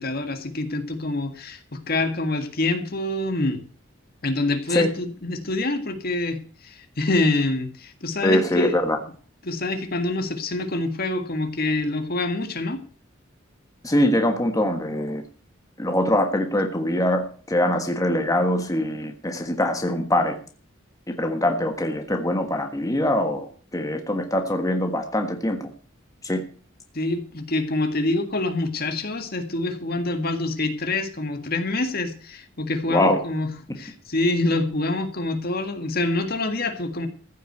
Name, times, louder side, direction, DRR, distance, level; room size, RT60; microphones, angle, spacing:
voice 1, 0.0-3.6 4.2-8.8 9.4-12.8 26.9-33.5 33.8-37.1, left 2 dB, 50° left, 7 dB, 1.8 m, -26 dB
voice 2, 8.2-9.0 13.8-15.2 15.8-20.4 21.2-25.7 26.2-26.4 32.9-33.2, left 1 dB, 15° left, 4 dB, 1.5 m, -23 dB
15.0 x 6.4 x 8.0 m, 0.42 s
head